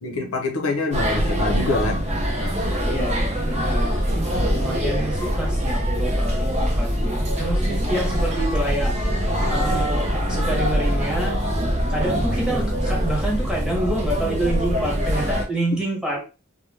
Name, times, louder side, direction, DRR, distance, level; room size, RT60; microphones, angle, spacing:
voice 1, 0.0-2.1 9.3-9.4, left 2 dB, 70° left, 0.7 m, -25 dB
Restaurant Suzhou China, 0.9-15.4, equal, 30° right, 0.6 m, -23 dB
voice 2, 2.8-4.0 4.5-8.9 9.5-11.4 11.9-16.2, right 1 dB, 5° right, 0.8 m, -28 dB
2.2 x 2.2 x 3.2 m
head